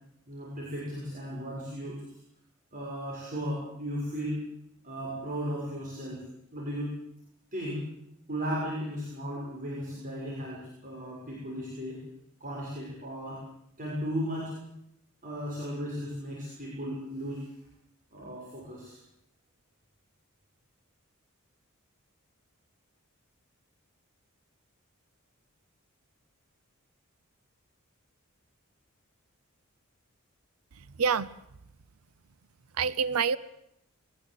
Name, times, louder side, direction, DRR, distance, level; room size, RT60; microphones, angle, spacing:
voice 1, 0.3-2.0 2.7-4.4 4.8-6.2 6.5-7.0 7.5-7.8 8.3-12.0 12.4-13.4 13.8-14.5 15.2-17.5 18.1-19.0, equal, 40° right, -4 dB, 6.5 m, -35 dB
voice 2, 30.7-31.3 32.7-33.4, right 6 dB, 90° right, 18 dB, 0.8 m, -27 dB
21.5 x 19.0 x 8.2 m, 0.79 s
head